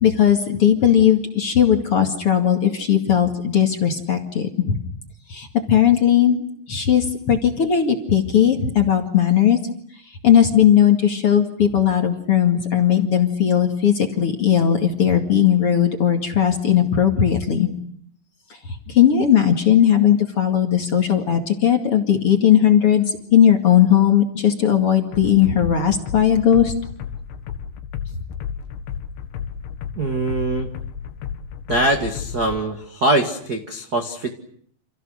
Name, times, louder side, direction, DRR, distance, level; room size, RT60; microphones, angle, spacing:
voice 1, 0.0-4.8 5.3-6.4 6.7-9.6 10.2-17.7 18.9-23.0 23.3-26.7, left 9 dB, 40° left, 4 dB, 2.3 m, -17 dB
sound 1, 25.1-32.6, left 7 dB, 90° left, 4.1 m, -33 dB
voice 2, 30.0-30.7 31.7-34.3, right 2 dB, 55° right, 5 dB, 1.0 m, -22 dB
29.5 x 28.0 x 6.6 m, 0.63 s
omnidirectional pair, 5.1 m